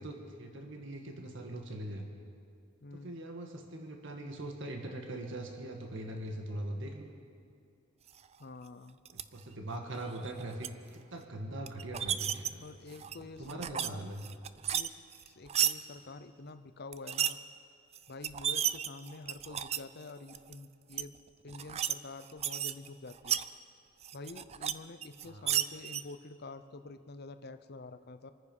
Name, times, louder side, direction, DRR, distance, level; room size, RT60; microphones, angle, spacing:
voice 1, 0.0-2.1 2.9-7.1 9.1-12.6 13.2-14.2 25.2-25.5, right 1 dB, 65° right, 3 dB, 1.7 m, -41 dB
voice 2, 2.8-3.2 8.4-9.0 12.6-14.0 14.7-17.4 18.1-21.1 21.4-23.4 24.1-28.3, left 3 dB, 50° left, 10 dB, 0.7 m, -48 dB
sound 1, 9.1-9.2 10.1-10.7 11.7-12.5 12.9-13.9 14.2-15.7 16.9-17.3 17.9-18.0 18.2-19.8 20.3-20.5 20.9-21.0 21.5-21.9 22.2-23.5 24.0-24.7 25.0-26.0, right 10 dB, 30° right, 0.4 m, -33 dB
26.0 x 9.8 x 5.5 m, 2.5 s
head